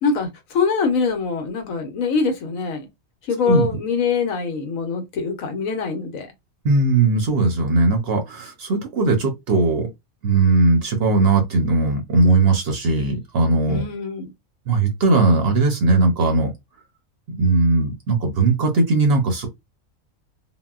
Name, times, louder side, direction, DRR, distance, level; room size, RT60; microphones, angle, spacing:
voice 1, 0.0-2.9 3.3-6.3 13.7-14.3, left 5 dB, 75° left, 1.1 m, -23 dB
voice 2, 6.6-9.9 10.2-13.8 14.7-16.5 17.3-19.5, right 3 dB, 55° right, 0.9 m, -18 dB
3.8 x 2.1 x 2.3 m
omnidirectional pair, 1.4 m